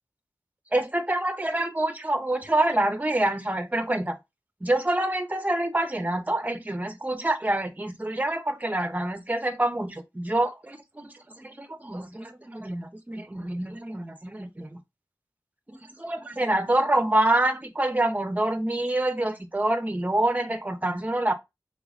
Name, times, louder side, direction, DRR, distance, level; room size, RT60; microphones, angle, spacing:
voice 1, 0.7-4.2 4.6-11.1 11.4-14.8 15.7-21.3, right 1 dB, 20° right, 0.6 m, -26 dB
3.5 x 3.0 x 2.5 m
wide cardioid pair, 65°, 7 cm